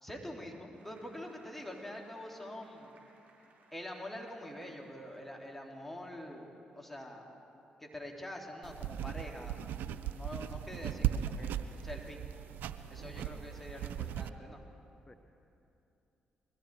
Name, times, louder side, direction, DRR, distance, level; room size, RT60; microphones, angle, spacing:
voice 1, 0.0-2.9 3.7-7.3 7.8-9.6 9.9-11.6 11.8-12.2 12.9-14.6, left 1 dB, 5° left, 0 dB, 2.9 m, -45 dB
Applause, 0.7-6.4, right 3 dB, 50° right, 4.0 m, -65 dB
sound 1, 8.6-14.3, right 10 dB, 75° right, 0.5 m, -38 dB
voice 2, 12.9-13.7 15.1-15.2, left 2 dB, 25° left, 7 dB, 0.8 m, -57 dB
21.0 x 14.0 x 4.6 m, 2.8 s
hypercardioid pair, 45°, 3 cm